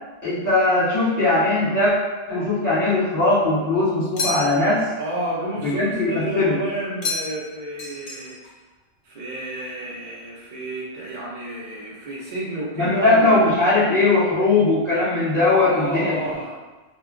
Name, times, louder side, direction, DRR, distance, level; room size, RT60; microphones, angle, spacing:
voice 1, 0.2-1.9 2.3-4.9 5.6-6.6 12.8-16.2, left 2 dB, 15° left, -9 dB, 1.0 m, -19 dB
sound 1, 4.2-4.8 7.0-7.5 7.8-8.5, left 3 dB, 55° left, 0.7 m, -29 dB
voice 2, 5.0-8.4 9.0-13.4 15.6-16.6, right 1 dB, 50° right, -6 dB, 0.6 m, -30 dB
2.3 x 2.2 x 3.5 m, 1.2 s
omnidirectional pair, 1.3 m